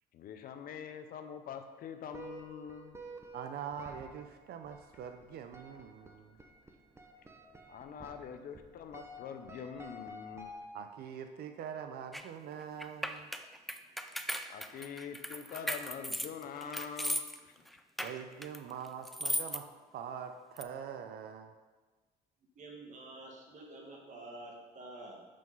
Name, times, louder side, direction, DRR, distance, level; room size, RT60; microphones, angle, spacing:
voice 1, 0.1-3.0 7.7-10.5 14.5-17.5, left 7 dB, 60° left, 7 dB, 0.7 m, -44 dB
sound 1, 2.1-11.1, equal, 15° right, 0.8 m, -51 dB
voice 2, 3.3-6.4 10.7-13.3 18.0-21.5, right 8 dB, 65° right, 7 dB, 0.5 m, -44 dB
sound 2, 12.1-12.2 12.8-17.4 17.7-19.6 20.6-20.7, equal, ahead, 0.3 m, -37 dB
voice 3, 22.6-25.3, right 2 dB, 45° right, -1 dB, 1.7 m, -48 dB
5.8 x 5.0 x 5.4 m, 1.3 s
cardioid pair, 110°, 17 cm